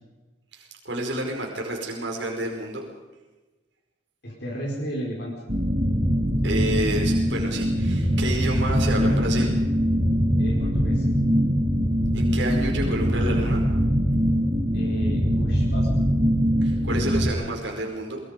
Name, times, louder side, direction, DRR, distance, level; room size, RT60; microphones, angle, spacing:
voice 1, 0.5-2.8 6.4-9.6 12.1-13.6 16.6-18.2, right 1 dB, 70° right, 0 dB, 5.1 m, -29 dB
voice 2, 4.2-5.3 10.4-11.1 14.7-15.9, equal, 60° left, -3 dB, 4.9 m, -33 dB
sound 1, 5.5-17.3, equal, 40° right, 4.2 m, -22 dB
23.0 x 23.0 x 5.3 m, 1.1 s
head